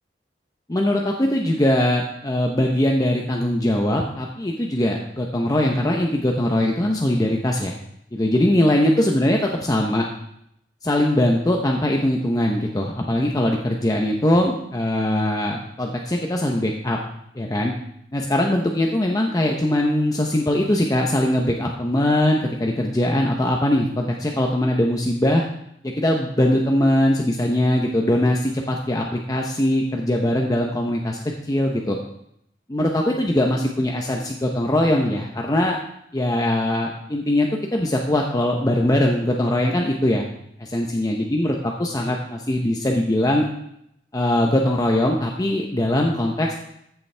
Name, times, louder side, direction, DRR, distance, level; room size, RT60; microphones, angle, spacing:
voice 1, 0.7-7.7 8.1-10.0 10.8-17.0 17.4-17.7 18.1-25.4 25.8-31.2 31.5-32.0 32.7-35.8 36.1-40.3 40.6-43.4 44.1-46.5, left 1 dB, 20° left, 0 dB, 0.8 m, -21 dB
13.5 x 7.0 x 3.3 m, 0.76 s
head